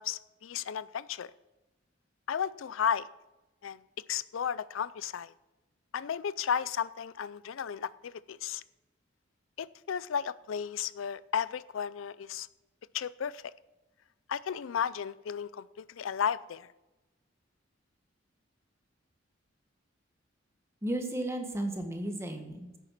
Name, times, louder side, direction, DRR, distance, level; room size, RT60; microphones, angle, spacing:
voice 1, 0.0-1.3 2.3-3.1 3.6-3.8 4.1-5.3 5.9-8.6 9.6-12.5 12.9-13.5 14.3-16.7, left 8 dB, 80° left, 0.4 m, -34 dB
voice 2, 20.8-22.8, right 1 dB, 15° right, 1.6 m, -34 dB
11.0 x 8.9 x 5.9 m
head